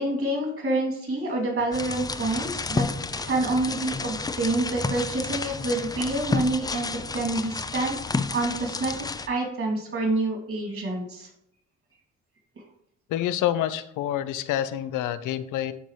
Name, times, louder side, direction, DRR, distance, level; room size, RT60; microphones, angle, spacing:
voice 1, 0.0-2.9 3.2-6.9 7.1-8.9 9.3-11.3, right 2 dB, 45° right, 0 dB, 2.9 m, -27 dB
sound 1, 1.7-9.3, left 3 dB, 15° left, 0.4 m, -31 dB
voice 2, 13.1-15.7, left 11 dB, 85° left, 13 dB, 0.6 m, -27 dB
12.0 x 4.1 x 3.2 m, 0.75 s
cardioid pair, 90°, 30 cm